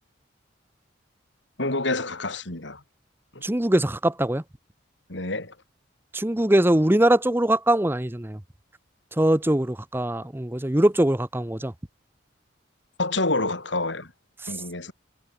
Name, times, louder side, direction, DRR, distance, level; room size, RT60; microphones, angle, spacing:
voice 1, 1.6-2.8 3.3-3.4 5.1-5.5 13.0-14.1 14.5-14.9, left 2 dB, 70° left, 4.1 m, -27 dB
voice 2, 3.4-4.4 6.1-8.4 9.1-11.7 14.4-14.5, right 1 dB, 10° right, 0.8 m, -22 dB
head